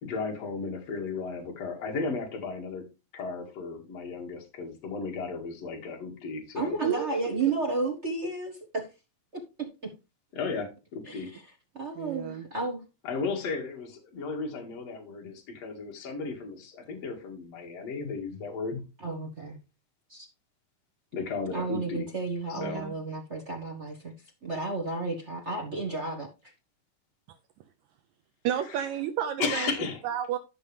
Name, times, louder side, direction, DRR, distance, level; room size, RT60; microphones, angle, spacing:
voice 1, 0.0-2.9 3.1-6.8 10.3-11.3 13.0-18.8 21.1-22.1 22.5-22.8 28.7-28.9 29.4-30.0, left 4 dB, 55° left, 3.1 m, -34 dB
voice 2, 6.5-8.9 9.8-9.9 11.1-11.4 11.7-12.8 19.0-19.6 20.1-20.3 21.5-24.1 24.4-26.3, right 3 dB, 35° right, 1.1 m, -32 dB
voice 3, 12.0-12.5 22.6-22.9 28.4-29.7 30.0-30.4, right 10 dB, 75° right, 2.0 m, -31 dB
12.5 x 5.9 x 3.3 m
omnidirectional pair, 3.5 m